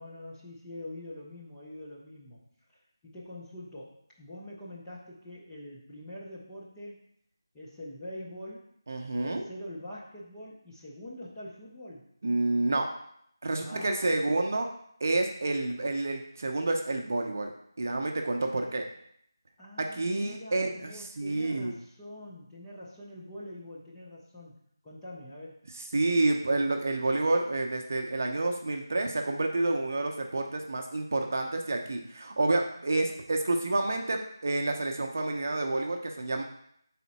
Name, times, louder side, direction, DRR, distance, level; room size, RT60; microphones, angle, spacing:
voice 1, 0.0-7.0 7.5-8.7 9.2-12.1 13.6-14.3 19.6-24.6 24.8-25.6, left 1 dB, 5° left, -7 dB, 0.5 m, -44 dB
voice 2, 8.9-9.4 12.2-12.9 13.4-14.7 15.0-17.5 17.8-18.8 19.8-21.7 25.9-36.4, right 2 dB, 35° right, 3 dB, 0.7 m, -29 dB
5.6 x 4.2 x 4.1 m, 0.70 s
figure-of-eight pair, 175°, 2 cm